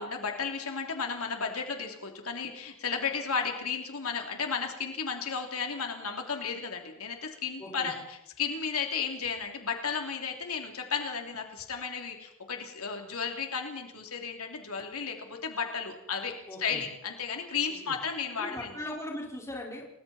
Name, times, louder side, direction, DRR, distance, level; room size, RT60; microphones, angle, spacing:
voice 1, 0.0-16.3 16.6-18.7, left 6 dB, 85° left, 3 dB, 3.2 m, -34 dB
voice 2, 7.6-7.9 16.5-16.8 17.9-18.0 18.4-19.8, left 1 dB, 15° left, -2 dB, 5.2 m, -39 dB
29.5 x 20.5 x 4.4 m, 0.82 s
head